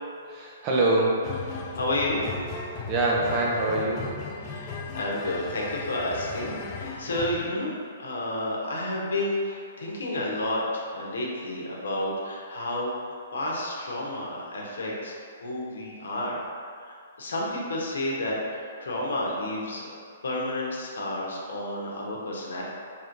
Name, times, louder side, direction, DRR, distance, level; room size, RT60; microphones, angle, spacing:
voice 1, 0.3-1.3 2.9-4.2, right 2 dB, 30° right, -4 dB, 0.7 m, -24 dB
sound 1, 1.2-7.5, left 4 dB, 30° left, 0.4 m, -36 dB
voice 2, 1.5-2.2 4.4-12.9 13.3-15.1 15.4-16.4 16.8-19.9 20.2-22.6, left 1 dB, 80° left, -3 dB, 0.9 m, -31 dB
4.4 x 3.3 x 2.6 m, 2.2 s
hypercardioid pair, 140°, 0 cm